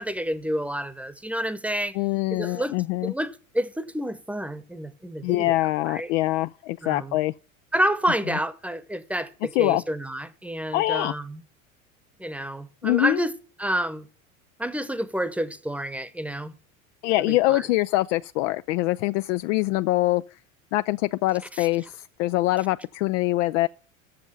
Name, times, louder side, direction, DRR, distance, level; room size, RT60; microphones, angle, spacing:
voice 1, 0.0-2.0 2.3-5.5 5.8-6.1 6.8-7.2 7.7-11.4 12.2-13.3 13.6-14.1 14.6-16.5 17.3-17.7 21.6-21.7, right 1 dB, 5° right, 0.9 m, -29 dB
voice 2, 1.9-3.1 5.2-7.3 9.6-9.8 10.7-11.1 12.8-13.2 17.0-20.2 20.7-23.7, left 18 dB, 60° left, 0.5 m, -24 dB
7.7 x 7.1 x 6.7 m
hypercardioid pair, 80°, 42 cm